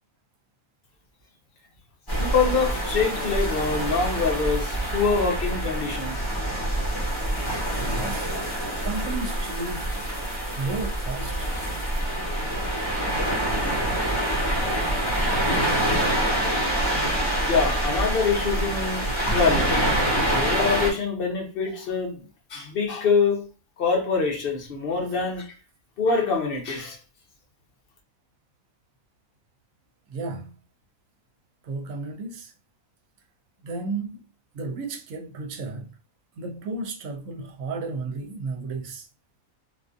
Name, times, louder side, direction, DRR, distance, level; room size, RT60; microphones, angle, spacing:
sound 1, 2.1-20.9, right 1 dB, 20° left, 1.0 m, -26 dB
voice 1, 2.2-6.3 17.5-20.0 20.3-23.5 23.8-25.5 26.0-27.0, left 5 dB, 55° left, 0.7 m, -25 dB
voice 2, 7.7-8.3 8.8-10.1 10.6-11.5 30.1-30.6 31.6-32.5 33.6-34.2 34.5-35.9 36.4-39.1, right 3 dB, 70° right, 1.0 m, -33 dB
2.5 x 2.5 x 2.3 m
omnidirectional pair, 1.5 m